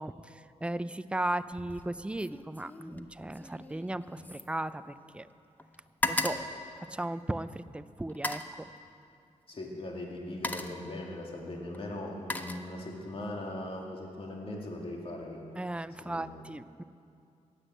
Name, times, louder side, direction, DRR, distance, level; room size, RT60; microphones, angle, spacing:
voice 1, 0.0-5.3 6.1-6.3 6.9-8.7 15.6-16.8, right 1 dB, 10° right, 13 dB, 0.4 m, -36 dB
sound 1, 1.5-1.9 2.2-5.3 5.6-7.5 8.1-8.6 9.6-9.8 10.2-10.9 11.7-13.1 13.5-13.9, left 2 dB, 15° left, 0.8 m, -37 dB
voice 2, 9.5-15.4 16.0-16.4, left 1 dB, 45° left, -1 dB, 2.2 m, -40 dB
16.0 x 10.0 x 7.8 m, 2.5 s
wide cardioid pair, 100°, 13 cm